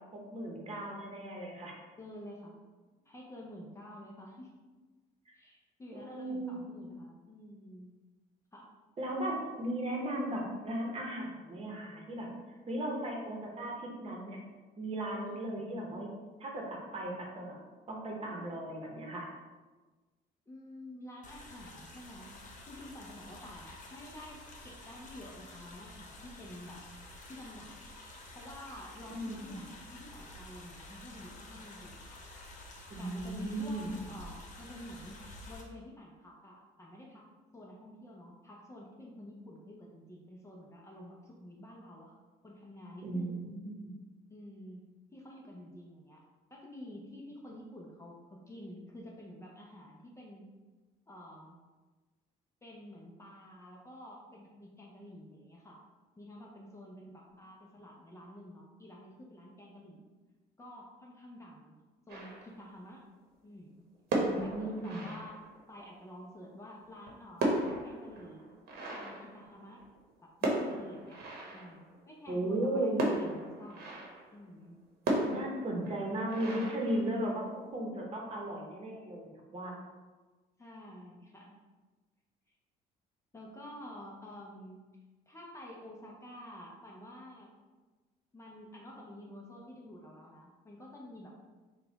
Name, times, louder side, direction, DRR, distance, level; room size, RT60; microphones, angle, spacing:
voice 1, 0.1-1.7 5.3-5.4 5.9-6.6 9.0-12.3 12.7-14.4 14.8-16.1 16.4-17.6 17.9-19.3 29.1-29.6 32.9-33.9 43.0-43.9 64.1-65.1 72.3-73.0 75.2-79.8, right 1 dB, 35° right, -1 dB, 1.0 m, -36 dB
voice 2, 2.0-2.6 3.1-4.6 5.3-7.9 8.5-8.7 15.3-15.6 20.5-22.3 22.7-26.8 27.3-27.9 28.3-32.2 33.0-35.2 35.5-37.2 37.5-43.4 44.3-44.8 45.1-46.2 46.5-50.4 51.1-51.6 52.6-55.8 56.2-60.1 60.6-61.7 62.1-63.0 63.4-63.8 64.4-65.4 65.7-68.5 68.9-69.8 70.2-74.8 80.6-81.5 83.3-84.8 85.3-87.5 88.3-91.4, left 1 dB, 15° left, -2 dB, 0.6 m, -49 dB
sound 1, 21.2-35.6, left 1 dB, 50° left, 0.8 m, -50 dB
sound 2, 62.1-62.8 63.9-65.8 66.8-70.0 70.4-72.0 73.0-74.4 75.1-77.6, right 1 dB, 70° right, 0.9 m, -36 dB
3.9 x 2.3 x 3.9 m, 1.3 s
cardioid pair, 110°, 17 cm